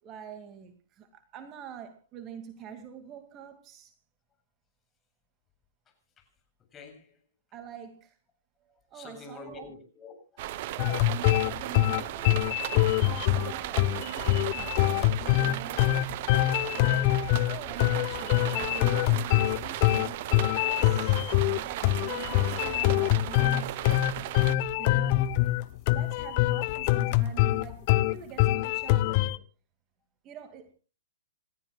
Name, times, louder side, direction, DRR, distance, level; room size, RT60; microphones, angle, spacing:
voice 1, 0.0-3.9 7.5-8.2 8.6-9.7 10.7-12.6 13.0-16.1 16.7-21.2 21.5-23.8 24.8-29.4 30.2-30.7, right 8 dB, 30° right, 2.4 m, -45 dB
voice 2, 5.9-6.4 6.7-7.2 8.7-10.8 17.2-17.4 24.2-24.4, left 4 dB, 20° left, 7.7 m, -50 dB
sound 1, 10.4-24.6, right 14 dB, 50° right, 1.0 m, -36 dB
sound 2, 10.8-29.4, left 16 dB, 45° left, 1.0 m, -24 dB
30.0 x 14.0 x 2.4 m
hypercardioid pair, 115°, 0 cm